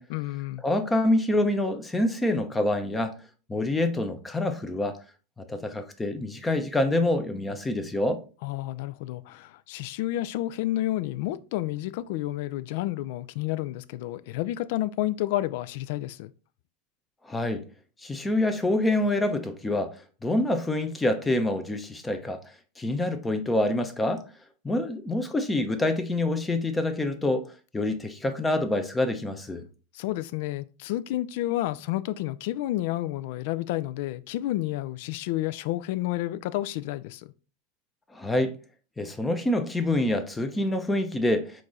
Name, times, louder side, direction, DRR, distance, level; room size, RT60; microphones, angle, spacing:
voice 1, 0.1-0.6 8.4-16.3 29.9-37.3, left 15 dB, 65° left, 0.3 m, -30 dB
voice 2, 0.6-3.1 3.5-5.0 5.5-8.2 17.3-17.6 18.0-19.9 20.2-22.4 22.8-24.2 24.6-27.4 27.7-29.6 38.1-38.5 39.0-41.6, left 1 dB, 10° left, 0.7 m, -26 dB
4.5 x 2.6 x 4.0 m
hypercardioid pair, 115°, 0 cm